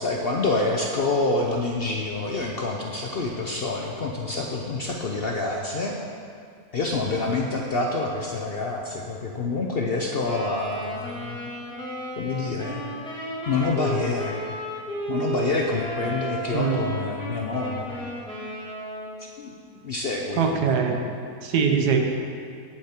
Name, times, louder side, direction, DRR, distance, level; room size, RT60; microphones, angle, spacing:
voice 1, 0.0-5.9 6.7-11.4 12.2-12.8 13.5-14.4 15.1-18.0 19.4-19.5 19.8-20.5, left 3 dB, 55° left, 0 dB, 0.7 m, -27 dB
Wind instrument woodwind instrument, 10.2-19.3, right 2 dB, 5° left, 1.7 m, -33 dB
voice 2, 20.4-21.0 21.4-22.0, right 6 dB, 85° right, 3 dB, 1.5 m, -22 dB
8.7 x 8.1 x 4.4 m, 2.3 s
omnidirectional pair, 1.7 m